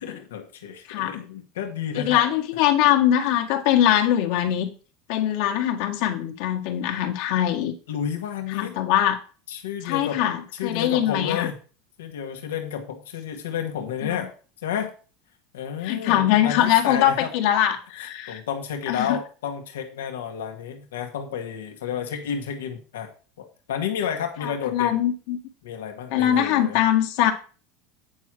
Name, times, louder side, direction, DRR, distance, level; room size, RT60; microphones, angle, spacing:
voice 1, 0.0-2.2 2.5-2.6 7.9-8.8 9.5-10.2 10.5-11.5 12.0-14.3 14.6-14.9 15.5-17.3 18.0-23.1 23.4-25.0 25.6-26.8, left 8 dB, 90° left, 5 dB, 1.7 m, -31 dB
voice 2, 2.0-4.7 5.1-7.8 8.5-9.2 9.8-11.5 14.0-14.2 15.8-18.4 18.9-19.2 24.4-25.4 26.1-27.3, left 11 dB, 70° left, 4 dB, 1.9 m, -22 dB
9.2 x 4.7 x 6.3 m, 0.37 s
supercardioid pair, 110°, 0 cm